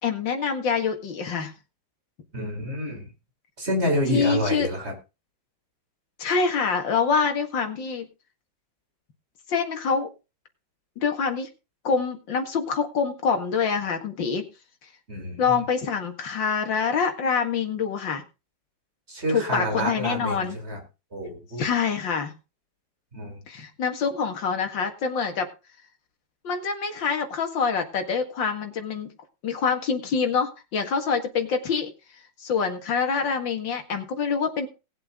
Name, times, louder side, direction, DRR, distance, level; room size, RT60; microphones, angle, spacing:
voice 1, 0.0-1.5 4.1-4.7 6.2-8.1 9.5-10.1 11.0-11.5 11.8-14.5 15.4-18.2 19.3-20.6 21.6-22.3 23.5-25.5 26.4-29.1 29.4-31.9 32.4-34.7, left 5 dB, 80° left, 5 dB, 2.6 m, -25 dB
voice 2, 2.3-3.1 3.6-4.9 15.1-15.6 19.1-20.8 21.1-21.6 23.1-23.4, equal, 35° right, 2 dB, 4.5 m, -28 dB
18.5 x 8.0 x 3.7 m, 0.29 s
omnidirectional pair, 2.0 m